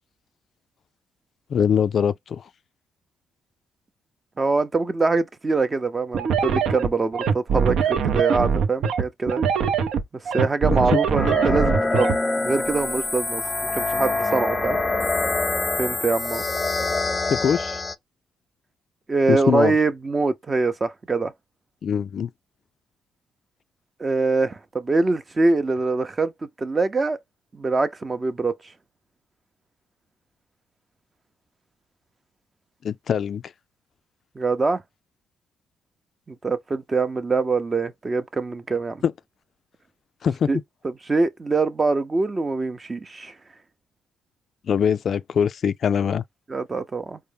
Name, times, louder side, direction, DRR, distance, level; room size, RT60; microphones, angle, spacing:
voice 1, 1.5-2.4 10.9-11.0 17.3-17.8 19.3-19.7 21.8-22.3 32.8-33.4 39.0-39.1 40.2-40.5 44.7-46.2, left 7 dB, 55° left, 0.3 m, -22 dB
voice 2, 4.4-9.4 10.2-12.1 12.4-13.4 13.8-14.8 15.8-16.4 19.1-21.3 24.0-26.3 26.6-27.2 27.5-28.5 34.4-34.8 36.3-39.0 40.5-40.6 40.8-43.3 46.5-47.2, right 3 dB, 25° right, 0.6 m, -23 dB
sound 1, 6.1-12.2, right 6 dB, 70° right, 0.6 m, -22 dB
sound 2, 11.2-17.9, left 3 dB, 20° left, 0.6 m, -25 dB
4.4 x 2.1 x 3.3 m
cardioid pair, 90°, 0 cm